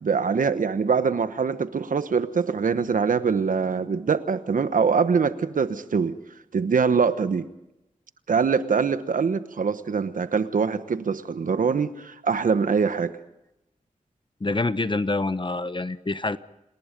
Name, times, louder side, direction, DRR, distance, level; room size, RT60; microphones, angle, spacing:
voice 1, 0.0-6.1 6.5-7.5 8.3-13.2, right 5 dB, 90° right, 12 dB, 1.1 m, -23 dB
voice 2, 14.4-16.4, left 2 dB, 35° left, 13 dB, 1.0 m, -26 dB
28.0 x 19.0 x 5.3 m, 0.91 s
cardioid pair, 45°, 14 cm